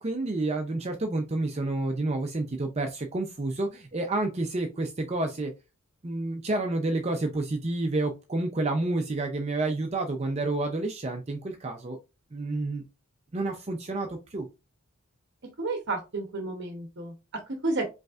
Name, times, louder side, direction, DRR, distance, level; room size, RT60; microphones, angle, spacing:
voice 1, 0.0-5.5 6.0-12.0 12.3-12.8 13.3-14.5, right 2 dB, 30° right, 4 dB, 0.5 m, -29 dB
voice 2, 15.6-17.9, right 2 dB, 50° right, 3 dB, 0.8 m, -31 dB
5.1 x 3.2 x 2.4 m, 0.26 s
head